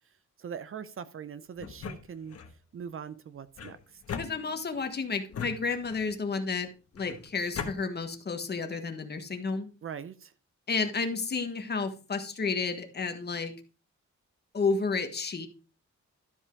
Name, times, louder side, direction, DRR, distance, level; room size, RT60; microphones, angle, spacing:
voice 1, 0.4-2.4 2.7-4.0 9.8-10.3, right 7 dB, 45° right, 14 dB, 0.6 m, -41 dB
sound 1, 1.6-2.6 3.6-4.8 5.3-6.2 7.0-7.7, left 6 dB, 55° left, 1.4 m, -39 dB
voice 2, 4.2-6.7 6.9-9.7 10.7-13.5 14.5-15.5, left 4 dB, 35° left, 7 dB, 1.3 m, -31 dB
12.5 x 5.4 x 4.6 m, 0.34 s
wide cardioid pair, 165°, 29 cm